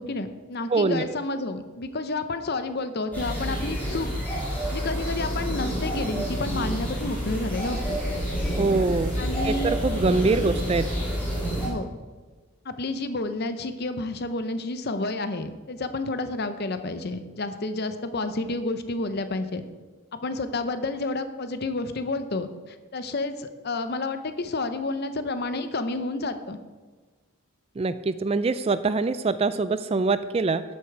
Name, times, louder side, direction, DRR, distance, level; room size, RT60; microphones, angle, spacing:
voice 1, 0.0-4.1 4.7-8.0 9.2-9.8 11.6-11.9 12.6-19.6 20.1-26.6, left 2 dB, 45° left, 10 dB, 0.7 m, -30 dB
voice 2, 0.7-1.0 8.6-9.2 9.4-10.9 27.8-30.6, right 3 dB, 25° right, 13 dB, 0.3 m, -24 dB
sound 1, 3.1-11.7, equal, 10° left, 3.2 m, -28 dB
11.0 x 8.2 x 4.6 m, 1.3 s
head